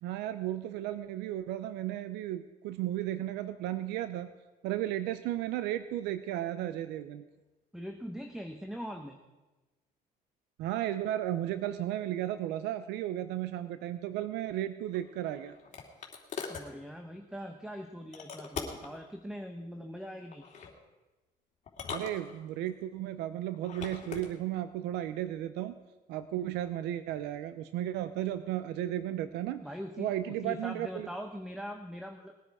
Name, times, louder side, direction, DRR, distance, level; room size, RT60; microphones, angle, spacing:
voice 1, 0.0-4.3 4.6-7.2 10.6-15.6 21.9-25.8 26.1-29.6 30.0-31.1, right 13 dB, 90° right, 12 dB, 0.6 m, -34 dB
voice 2, 7.7-9.2 16.5-20.5 29.6-32.4, equal, 5° right, 5 dB, 1.1 m, -42 dB
sound 1, 14.9-16.7 18.1-19.0 20.3-20.7 21.7-22.7 23.5-24.3, left 6 dB, 45° left, 2.8 m, -41 dB
20.0 x 10.0 x 4.9 m, 1.1 s
cardioid pair, 110°, 17 cm